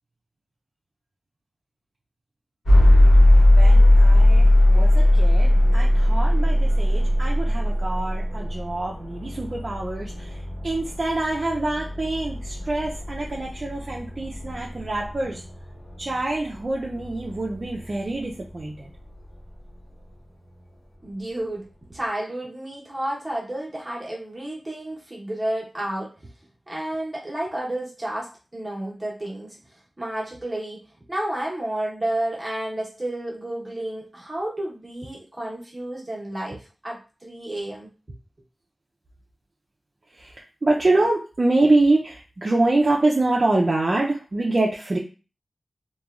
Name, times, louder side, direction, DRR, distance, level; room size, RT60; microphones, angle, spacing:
sound 1, 2.7-18.6, left 1 dB, 85° left, 1.0 m, -19 dB
voice 1, 3.5-15.4 16.0-18.9 40.2-40.3 40.6-45.0, right 2 dB, 45° right, -2 dB, 0.4 m, -25 dB
voice 2, 21.0-26.1 26.7-29.6 30.0-37.9, right 1 dB, 25° right, -4 dB, 0.9 m, -31 dB
3.0 x 2.2 x 2.4 m, 0.33 s
wide cardioid pair, 90°, 0 cm